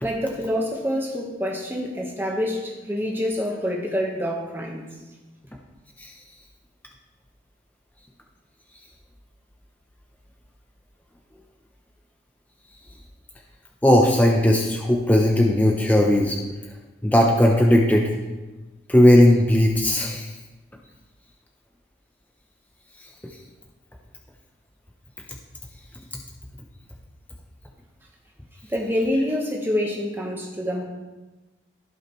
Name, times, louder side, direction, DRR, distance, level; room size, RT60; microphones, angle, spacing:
voice 1, 0.0-4.9 28.7-30.8, equal, 10° right, -1 dB, 1.3 m, -26 dB
voice 2, 13.8-16.4 17.0-18.1 18.9-20.3, left 1 dB, 10° left, 0 dB, 0.7 m, -17 dB
15.5 x 5.6 x 3.2 m, 1.2 s
head